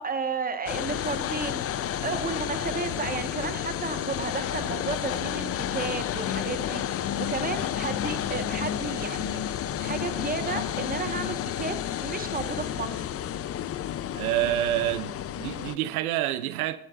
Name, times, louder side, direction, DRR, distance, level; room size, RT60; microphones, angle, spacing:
voice 1, 0.0-1.6 2.0-9.4 9.8-13.1, right 4 dB, 20° right, 1.5 m, -33 dB
sound 1, 0.7-15.8, left 10 dB, 35° left, 0.6 m, -31 dB
sound 2, 1.1-8.2, left 6 dB, 75° left, 2.7 m, -46 dB
voice 2, 14.1-16.8, right 14 dB, 85° right, 0.7 m, -27 dB
20.5 x 11.0 x 2.6 m
hypercardioid pair, 80°, 43 cm